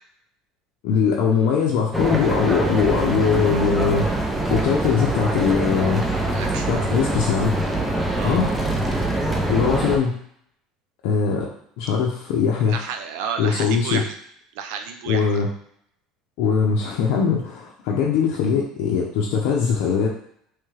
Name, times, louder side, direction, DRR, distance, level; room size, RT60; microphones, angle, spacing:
voice 1, 0.8-4.1 4.5-6.0 6.7-7.6 8.2-8.5 9.5-10.2 11.0-11.5 11.8-12.9 13.4-14.0 15.0-15.5 16.4-20.1, left 6 dB, 75° left, -2 dB, 0.5 m, -21 dB
sound 1, 1.9-10.0, right 1 dB, 10° right, 0.5 m, -24 dB
voice 2, 6.3-6.7 8.1-8.4 12.7-14.2 14.6-15.4, right 7 dB, 80° right, 6 dB, 0.4 m, -31 dB
3.2 x 2.3 x 3.2 m, 0.68 s
supercardioid pair, 115°, 0 cm